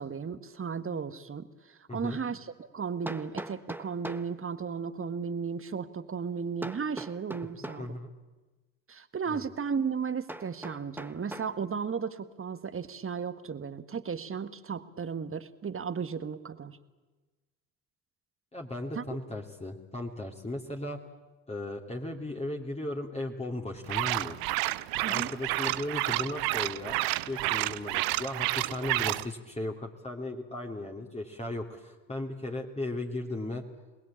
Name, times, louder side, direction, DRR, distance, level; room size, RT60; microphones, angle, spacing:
voice 1, 0.0-1.5 1.9-7.9 8.9-16.8 19.0-19.1 25.0-25.3, right 6 dB, 30° right, 12 dB, 1.7 m, -35 dB
Hammer, 1.5-1.6 3.1-4.3 6.6-7.9 10.3-11.6, right 1 dB, 5° right, 1.4 m, -41 dB
voice 2, 1.9-2.2 7.8-8.1 9.3-9.5 18.5-21.0 21.5-24.4 25.1-27.0 27.3-33.6, left 2 dB, 15° left, 0 dB, 2.8 m, -36 dB
sound 1, 23.9-29.2, right 19 dB, 60° right, 0.8 m, -30 dB
27.5 x 20.0 x 8.7 m, 1.2 s
figure-of-eight pair, 50°, 41 cm